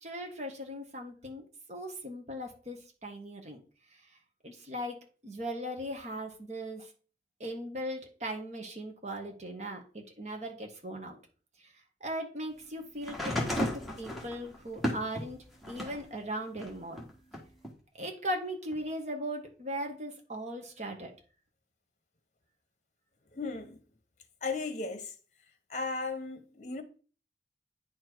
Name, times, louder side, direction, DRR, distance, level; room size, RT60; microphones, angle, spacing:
voice 1, 0.0-3.6 4.4-5.0 5.2-6.9 7.4-11.2 12.0-17.0 18.0-21.1, equal, 40° right, 1.6 m, -38 dB
sound 1, 13.0-16.1 16.6-17.7 18.7-18.8, equal, ahead, 1.5 m, -34 dB
voice 2, 23.3-23.8 24.4-25.1 25.7-26.8, left 3 dB, 40° left, 1.1 m, -35 dB
9.6 x 4.5 x 4.6 m
head